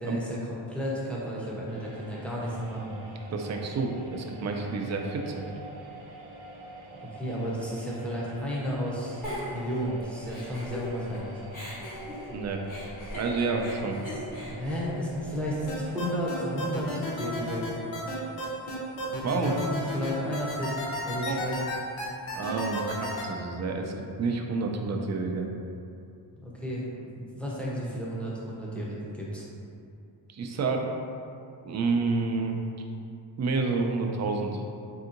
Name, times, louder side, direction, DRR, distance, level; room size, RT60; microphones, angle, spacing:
voice 1, 0.0-3.0 7.0-9.2 9.5-11.4 14.1-17.6 19.3-21.6 26.4-29.4, equal, 5° left, -6 dB, 0.7 m, -33 dB
sound 1, 1.7-17.6, right 1 dB, 75° right, 0.7 m, -46 dB
voice 2, 3.3-5.5 12.3-12.6 13.1-14.0 19.2-19.5 21.1-21.4 22.4-25.5 30.3-30.8 31.6-32.6 33.4-34.6, right 4 dB, 40° right, 2 dB, 0.4 m, -29 dB
Giggle, 9.2-11.2 11.5-15.7, left 1 dB, 40° left, 1.4 m, -39 dB
sound 2, 15.7-23.2, left 1 dB, 80° left, 0.8 m, -33 dB
3.4 x 2.7 x 2.5 m, 2.5 s
cardioid pair, 75°, 46 cm